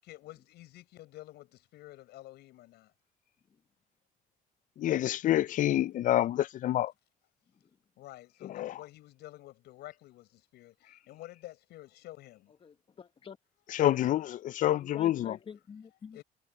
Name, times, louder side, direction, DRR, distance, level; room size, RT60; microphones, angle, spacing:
voice 1, 0.0-2.9 8.0-12.5 16.1-16.2, left 16 dB, 80° left, 7.3 m, -50 dB
voice 2, 4.8-6.9 8.5-8.7 13.7-15.4, left 13 dB, 50° left, 0.4 m, -27 dB
voice 3, 12.6-13.4 14.6-16.2, left 7 dB, 30° left, 0.9 m, -48 dB
cardioid pair, 110°, 17 cm